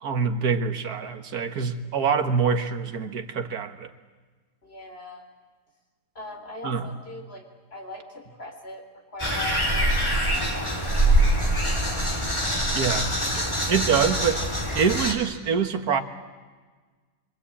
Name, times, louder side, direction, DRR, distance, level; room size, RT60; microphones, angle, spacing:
voice 1, 0.0-3.9 6.6-6.9 12.7-13.1 13.7-14.4 14.8-16.0, right 6 dB, 65° right, 7 dB, 2.0 m, -25 dB
voice 2, 4.6-5.2 6.1-7.5 7.7-9.9 10.3-12.2 13.0-13.1 13.4-14.2, left 1 dB, 35° left, 3 dB, 4.2 m, -41 dB
sound 1, 9.2-15.1, right 1 dB, 15° left, 3.0 m, -24 dB
25.5 x 25.0 x 8.6 m, 1.4 s
omnidirectional pair, 1.7 m